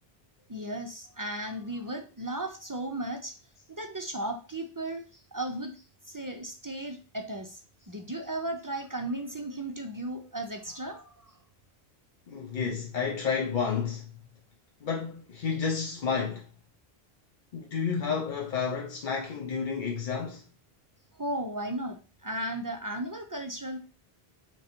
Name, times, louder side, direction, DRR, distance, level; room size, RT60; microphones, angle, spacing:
voice 1, 0.5-3.3 3.7-5.0 5.3-5.7 6.1-7.6 7.9-11.1 21.2-23.8, right 1 dB, 30° right, 0.3 m, -35 dB
voice 2, 12.3-14.0 14.8-16.5 17.5-20.4, left 6 dB, 55° left, 0.7 m, -31 dB
3.7 x 3.0 x 4.3 m
omnidirectional pair, 1.0 m